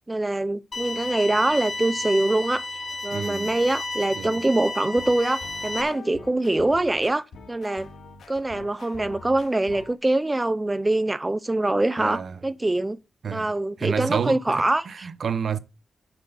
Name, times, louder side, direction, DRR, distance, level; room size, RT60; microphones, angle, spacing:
voice 1, 0.1-2.6 3.0-7.9 8.3-13.0 13.3-15.1, right 2 dB, 20° right, 0.6 m, -24 dB
sound 1, 0.7-5.8, left 2 dB, 40° left, 2.5 m, -32 dB
voice 2, 3.1-3.5 4.2-4.4 12.0-12.4 13.2-13.5 13.8-15.6, right 7 dB, 65° right, 0.8 m, -29 dB
sound 2, 4.8-10.0, left 4 dB, 85° left, 2.2 m, -45 dB
7.6 x 6.1 x 7.0 m
cardioid pair, 85°, 0 cm